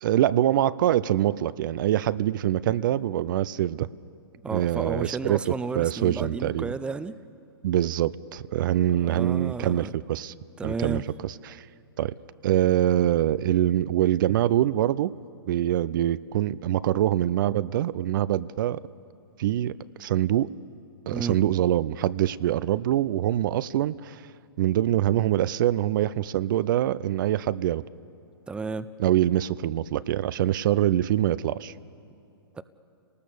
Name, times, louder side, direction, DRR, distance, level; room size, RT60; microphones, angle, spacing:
voice 1, 0.0-3.9 4.5-6.7 7.6-10.3 10.6-11.7 12.0-12.1 12.4-15.1 15.5-18.8 19.4-20.5 21.1-24.2 24.6-27.8 29.0-31.7, right 12 dB, 55° right, 18 dB, 0.5 m, -24 dB
voice 2, 4.4-7.2 9.0-9.9 10.6-11.0 21.1-21.4 28.5-28.9 32.5-32.6, right 4 dB, 10° right, 14 dB, 0.6 m, -32 dB
29.5 x 19.5 x 6.9 m, 2.5 s
hypercardioid pair, 125°, 13 cm